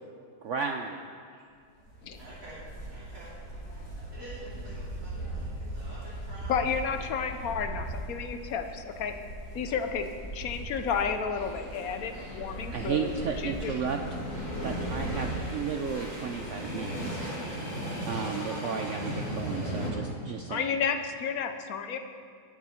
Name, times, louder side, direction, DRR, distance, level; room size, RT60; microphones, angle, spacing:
voice 1, 0.4-1.0 12.7-14.0 14.6-17.6 18.0-20.7, right 6 dB, 80° right, 5 dB, 0.6 m, -34 dB
sound 1, 1.8-19.9, right 1 dB, 25° left, 2.3 m, -37 dB
voice 2, 2.2-2.6 2.8-3.3 4.1-6.7 7.0-7.6 10.7-10.8 11.5-11.6 13.6-13.8, right 1 dB, 50° right, -9 dB, 3.6 m, -48 dB
voice 3, 6.5-9.2 9.5-10.1 10.3-13.1 13.4-13.7 20.5-22.0, left 6 dB, 60° left, 7 dB, 1.1 m, -31 dB
20.5 x 7.0 x 4.3 m, 2.2 s
omnidirectional pair, 1.9 m